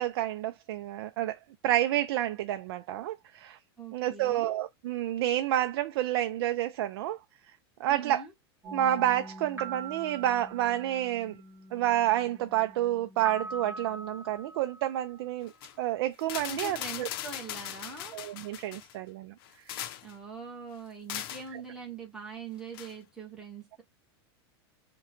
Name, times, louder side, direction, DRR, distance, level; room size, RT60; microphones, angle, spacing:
voice 1, 0.0-3.6 3.9-7.2 7.5-7.6 7.8-8.3 8.7-11.4 11.7-15.5 15.8-17.1 18.1-19.3 19.7-19.9, right 13 dB, 75° right, 0.4 m, -29 dB
voice 2, 3.8-4.5 7.9-8.3 16.5-18.2 20.0-23.8, right 5 dB, 5° right, 1.2 m, -43 dB
sound 1, 8.6-15.2, right 2 dB, 20° right, 1.6 m, -43 dB
sound 2, 15.5-15.7 16.2-18.9 19.4-20.1 21.1-21.5 22.7-22.9, left 12 dB, 65° left, 0.6 m, -39 dB
3.6 x 2.2 x 4.3 m
supercardioid pair, 125°, 13 cm